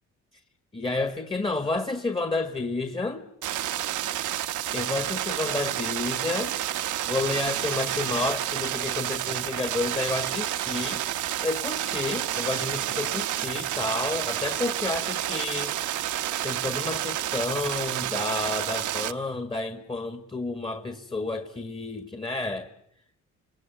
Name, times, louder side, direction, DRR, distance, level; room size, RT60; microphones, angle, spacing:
voice 1, 0.7-3.2 4.7-6.6 7.0-15.8 16.4-22.7, left 3 dB, 15° left, 8 dB, 1.8 m, -30 dB
sound 1, 3.4-19.1, right 12 dB, 80° right, 1.2 m, -30 dB
28.5 x 20.5 x 9.2 m, 0.75 s
cardioid pair, 90°, 30 cm